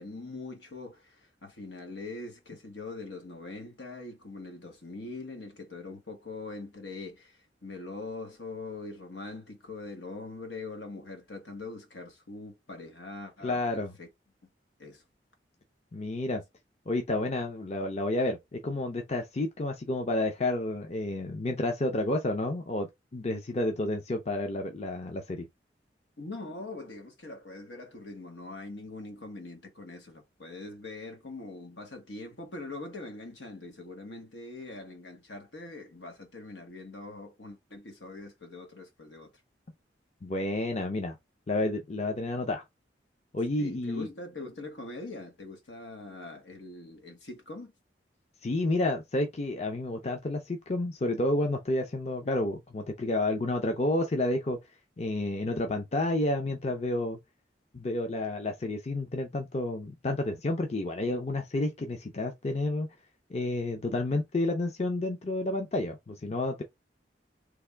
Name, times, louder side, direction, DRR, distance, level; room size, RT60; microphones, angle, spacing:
voice 1, 0.0-14.1 14.8-15.0 26.2-39.3 43.6-47.7, left 2 dB, 90° left, 1.3 m, -42 dB
voice 2, 13.4-13.9 15.9-16.4 16.9-25.5 40.2-41.2 41.5-42.6 43.3-44.1 48.4-54.6 55.0-57.2 57.7-62.9 63.3-66.6, left 2 dB, 40° left, 0.5 m, -30 dB
3.4 x 2.5 x 3.3 m
head